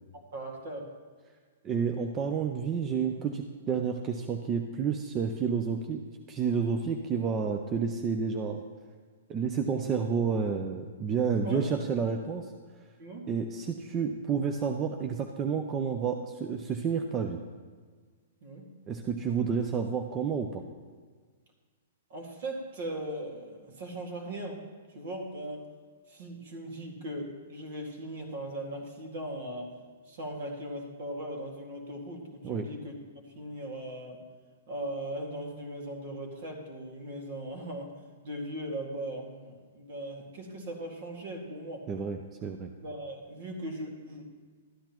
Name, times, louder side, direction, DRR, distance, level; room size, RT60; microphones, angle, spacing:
voice 1, 0.1-0.9 11.4-11.9 13.0-13.3 18.4-18.7 22.1-24.6 24.9-25.7 26.1-29.7 30.1-33.0 33.4-34.2 34.7-37.9 38.2-41.8 42.8-44.4, right 1 dB, 60° right, 1 dB, 2.0 m, -39 dB
voice 2, 1.6-6.0 6.3-8.6 9.3-12.5 13.3-17.4 18.9-20.6 32.4-32.7 41.9-42.7, right 6 dB, 25° right, 5 dB, 0.5 m, -30 dB
12.5 x 10.0 x 3.0 m, 1.5 s
hypercardioid pair, 135°, 0 cm